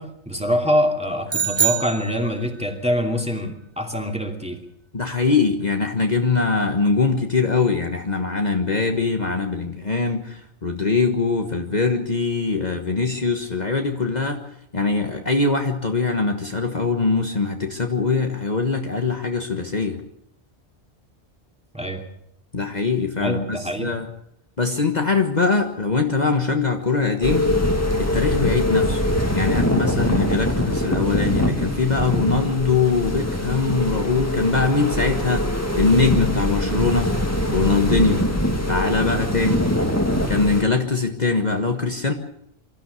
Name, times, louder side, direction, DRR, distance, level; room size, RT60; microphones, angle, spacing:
voice 1, 0.0-4.6 21.7-22.0 23.2-24.0, equal, 5° right, 3 dB, 2.7 m, -24 dB
sound 1, 1.3-2.7, right 8 dB, 25° right, 1.0 m, -24 dB
voice 2, 4.9-14.4 14.7-20.0 22.5-24.1 24.6-27.6 28.0-29.0 29.3-35.4 35.7-37.1 37.5-38.3 38.7-39.7 40.3-42.1, left 4 dB, 40° left, 4 dB, 1.5 m, -22 dB
sound 2, 27.2-40.6, left 1 dB, 15° left, 2.1 m, -23 dB
24.5 x 14.0 x 8.2 m, 0.75 s
omnidirectional pair, 1.2 m